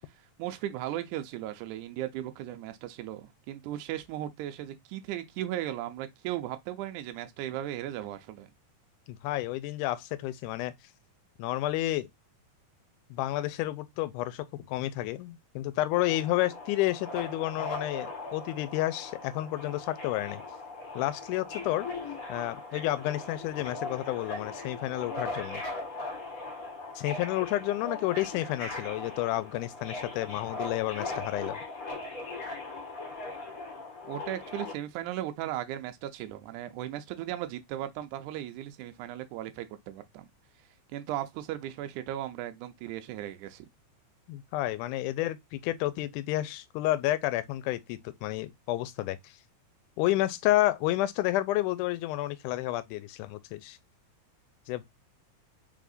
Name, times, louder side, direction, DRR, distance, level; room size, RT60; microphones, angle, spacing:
voice 1, 0.4-8.5 34.0-40.3 40.9-43.7, right 13 dB, 80° right, 2.0 m, -36 dB
voice 2, 9.1-10.7 11.4-12.1 13.1-20.4 21.0-21.9 22.3-25.6 27.0-31.6 44.3-49.4 50.0-53.8 54.7-54.8, left 15 dB, 80° left, 2.0 m, -30 dB
Subway metro underground, 15.9-34.7, left 2 dB, 45° left, 1.1 m, -39 dB
4.7 x 3.6 x 2.5 m
omnidirectional pair, 3.7 m